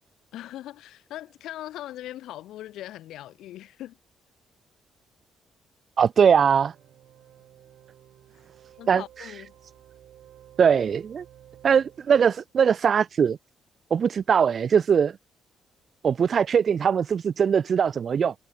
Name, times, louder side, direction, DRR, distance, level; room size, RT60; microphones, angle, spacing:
voice 1, 0.3-4.0 8.8-9.5, left 13 dB, 85° left, 3.5 m, -40 dB
voice 2, 6.0-6.7 8.9-9.3 10.6-11.2 11.6-13.4 13.9-15.2 16.0-18.3, right 7 dB, 50° right, 0.4 m, -21 dB
sound 1, 6.4-12.5, right 12 dB, 75° right, 6.1 m, -53 dB
cardioid pair, 90°, 0 cm